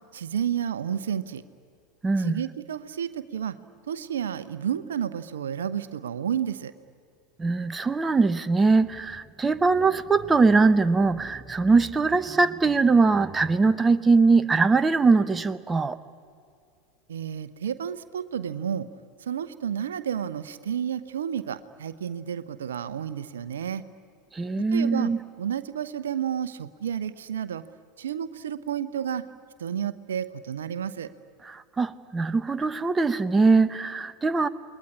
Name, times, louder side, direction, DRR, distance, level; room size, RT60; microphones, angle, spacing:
voice 1, 0.1-1.4 2.2-3.5 3.9-6.7 17.1-18.9 19.3-23.8 24.7-25.1 25.4-27.6 28.0-29.2 29.6-31.1, right 9 dB, 75° right, 13 dB, 0.9 m, -31 dB
voice 2, 2.0-2.4 7.4-16.0 24.4-25.2 31.4-34.5, right 4 dB, 15° right, 11 dB, 0.9 m, -21 dB
29.0 x 21.0 x 9.8 m, 2.4 s
figure-of-eight pair, 85°, 0 cm